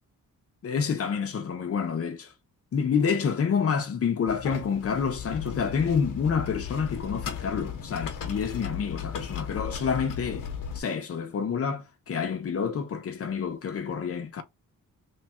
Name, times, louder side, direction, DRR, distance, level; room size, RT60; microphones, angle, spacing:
voice 1, 0.6-2.3 2.7-10.5 10.7-14.4, left 6 dB, 45° left, 0.7 m, -28 dB
sound 1, 4.3-10.8, left 8 dB, 75° left, 0.9 m, -36 dB
3.2 x 2.3 x 4.3 m
wide cardioid pair, 165°, 33 cm